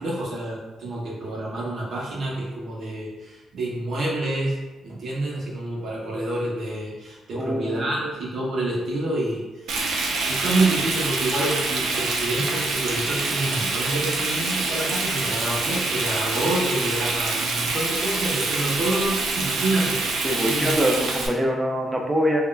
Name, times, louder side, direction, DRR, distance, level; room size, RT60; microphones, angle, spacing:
voice 1, 0.0-4.6 4.8-20.0 20.4-20.7, right 2 dB, 60° right, -4 dB, 0.8 m, -28 dB
voice 2, 7.3-7.9 20.2-22.4, equal, 15° right, 1 dB, 0.4 m, -24 dB
Frying (food), 9.7-21.3, right 3 dB, 85° right, 0.5 m, -26 dB
3.5 x 2.1 x 2.2 m, 1.2 s
cardioid pair, 130°, 0 cm